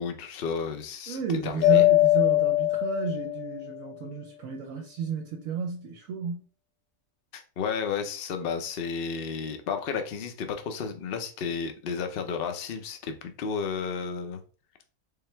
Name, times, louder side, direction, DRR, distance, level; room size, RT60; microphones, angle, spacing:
voice 1, 0.0-1.9 7.3-14.4, left 6 dB, 50° left, 0.7 m, -32 dB
voice 2, 1.1-6.5, right 5 dB, 65° right, 1.0 m, -33 dB
Mallet percussion, 1.6-3.7, left 16 dB, 75° left, 1.8 m, -21 dB
3.9 x 3.2 x 4.3 m
omnidirectional pair, 1.6 m